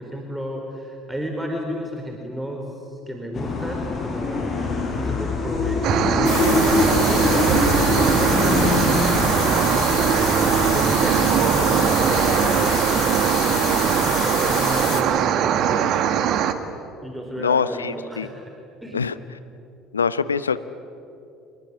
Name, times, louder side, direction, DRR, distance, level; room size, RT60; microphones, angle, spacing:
voice 1, 0.0-4.5 4.9-16.0 17.0-18.4 18.8-19.0, equal, 5° right, 1 dB, 4.5 m, -32 dB
sound 1, 3.3-12.8, left 4 dB, 40° left, 5.8 m, -25 dB
sound 2, 5.8-16.5, right 9 dB, 55° right, 1.8 m, -20 dB
sound 3, 6.2-15.0, left 9 dB, 55° left, 3.4 m, -29 dB
voice 2, 17.4-18.3 18.9-19.1 19.9-20.6, left 6 dB, 90° left, 15 dB, 0.8 m, -23 dB
27.0 x 22.0 x 9.9 m, 2.6 s
figure-of-eight pair, 60°, 0 cm